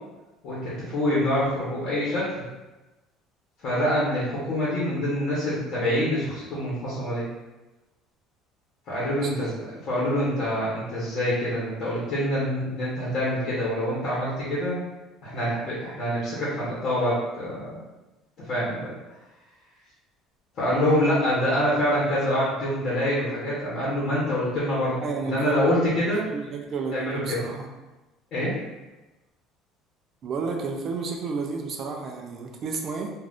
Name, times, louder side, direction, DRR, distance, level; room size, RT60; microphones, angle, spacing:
voice 1, 0.4-2.3 3.6-7.2 8.9-14.8 15.2-17.8 18.5-18.9 20.6-25.0 25.2-26.3 26.9-27.5 28.3-28.6, equal, 40° left, -8 dB, 0.9 m, -26 dB
voice 2, 9.2-9.5 20.7-21.0 25.0-25.7 26.3-27.7 30.2-33.1, right 4 dB, 35° right, 2 dB, 0.4 m, -31 dB
2.5 x 2.4 x 3.4 m, 1.1 s
cardioid pair, 175°, 0 cm